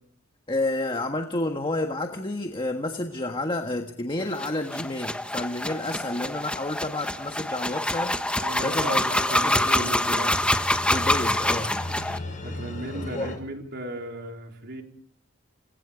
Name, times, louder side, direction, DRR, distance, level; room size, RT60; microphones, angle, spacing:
voice 1, 0.5-10.3 10.9-11.7 13.1-13.3, left 2 dB, 25° left, 4 dB, 1.5 m, -30 dB
sound 1, 4.3-12.2, left 1 dB, 5° left, 1.3 m, -26 dB
voice 2, 8.4-10.3 11.0-11.1 12.4-14.8, right 1 dB, 55° right, 3 dB, 4.0 m, -36 dB
sound 2, 9.1-13.4, left 2 dB, 40° left, 6.6 m, -37 dB
29.5 x 23.0 x 5.2 m, 0.69 s
head